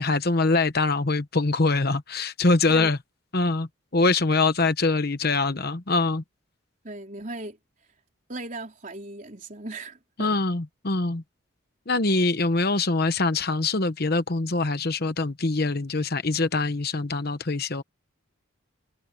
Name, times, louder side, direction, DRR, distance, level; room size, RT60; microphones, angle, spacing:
voice 1, 0.0-3.0 3.3-6.2 10.2-11.2 11.9-17.8, left 3 dB, 45° left, 1.0 m, -24 dB
voice 2, 6.8-7.6 8.3-10.3, right 2 dB, 40° right, 4.4 m, -37 dB
head